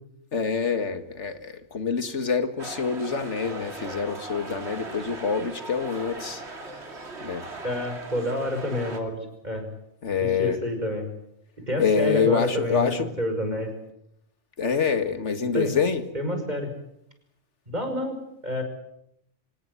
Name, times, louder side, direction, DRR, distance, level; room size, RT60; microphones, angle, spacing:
voice 1, 0.3-6.4 7.2-7.5 10.0-10.6 11.8-13.1 14.6-16.0, left 6 dB, 90° left, 10 dB, 2.1 m, -26 dB
sound 1, 2.6-9.0, right 2 dB, 65° right, 2.9 m, -39 dB
voice 2, 7.6-9.7 10.2-11.1 11.7-13.7 15.5-15.7 16.1-16.7 17.7-18.2 18.4-18.6, left 1 dB, 40° right, 6 dB, 5.6 m, -28 dB
25.5 x 18.0 x 9.7 m, 0.77 s
omnidirectional pair, 1.2 m